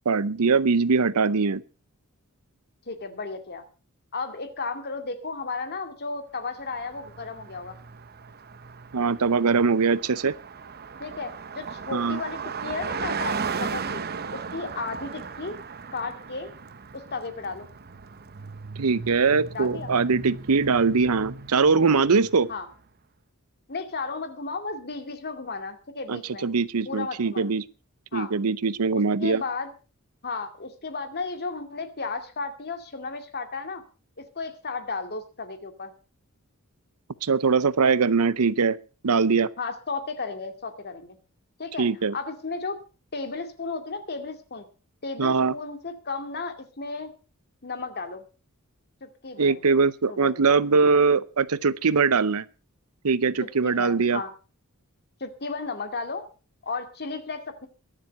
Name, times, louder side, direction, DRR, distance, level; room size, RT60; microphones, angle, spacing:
voice 1, 0.1-1.6 8.9-10.3 11.9-12.2 18.8-22.5 26.1-27.6 28.1-29.4 37.2-38.8 39.0-39.5 41.8-42.1 45.2-45.5 49.4-52.5 53.0-54.2, right 4 dB, 80° right, 0.7 m, -22 dB
voice 2, 2.9-3.6 4.1-7.8 11.0-14.0 14.3-15.6 15.9-16.5 16.9-17.7 19.5-19.9 22.5-22.7 23.7-26.5 26.9-27.5 28.1-28.3 28.9-29.7 30.2-33.8 34.2-35.9 39.6-41.2 41.6-41.9 42.1-42.8 43.1-44.7 45.0-47.1 47.6-48.2 49.0-49.5 50.1-50.3 53.6-54.3 55.2-56.3 56.6-57.7, left 4 dB, 50° left, 2.3 m, -34 dB
Car passing by, 6.6-22.6, right 5 dB, 45° right, 0.9 m, -37 dB
22.5 x 7.6 x 5.4 m
head